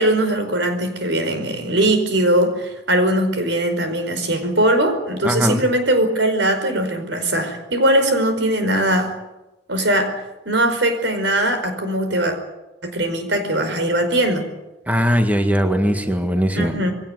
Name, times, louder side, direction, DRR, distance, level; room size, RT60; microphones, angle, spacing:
voice 1, 0.0-9.1 9.7-10.2 10.4-12.4 12.8-14.5 16.5-16.9, right 1 dB, 90° right, 7 dB, 5.0 m, -20 dB
voice 2, 5.2-5.6 14.9-16.7, equal, 10° right, 5 dB, 1.8 m, -19 dB
22.5 x 17.5 x 9.7 m, 0.99 s
head